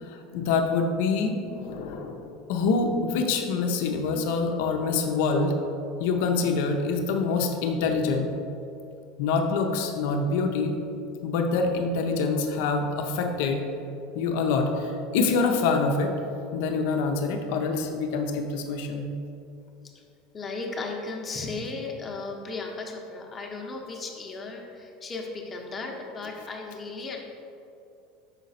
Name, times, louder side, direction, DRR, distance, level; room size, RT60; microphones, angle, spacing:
voice 1, 0.0-5.5 6.0-8.3 9.2-10.8 11.2-13.6 14.1-16.1 16.5-19.1, left 4 dB, 70° left, 4 dB, 0.6 m, -26 dB
voice 2, 20.3-27.2, left 3 dB, 25° left, 1 dB, 0.8 m, -35 dB
5.7 x 4.0 x 4.1 m, 2.7 s
supercardioid pair, 100°, 0 cm